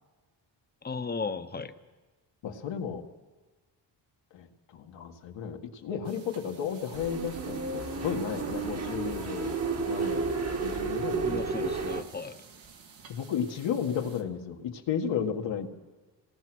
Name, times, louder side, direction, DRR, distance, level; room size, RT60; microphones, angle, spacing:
voice 1, 0.8-1.7 11.2-12.4, left 4 dB, 20° left, 10 dB, 0.8 m, -35 dB
voice 2, 2.4-3.0 4.3-4.5 4.7-9.5 9.9-10.2 10.6-11.7 13.1-15.7, left 7 dB, 85° left, 2 dB, 1.9 m, -33 dB
sound 1, 6.0-14.2, right 6 dB, 90° right, 2.2 m, -52 dB
sound 2, 6.9-12.0, right 4 dB, 35° right, 1.3 m, -32 dB
27.0 x 18.0 x 6.2 m, 1.3 s
cardioid pair, 145°, 43 cm